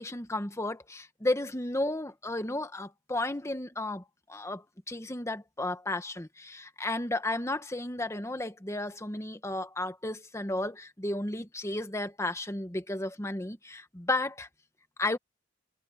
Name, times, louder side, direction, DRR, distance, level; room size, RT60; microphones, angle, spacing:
voice 1, 0.0-4.0 4.3-14.5 15.0-15.2, left 2 dB, 15° left, 1.2 m, -33 dB
head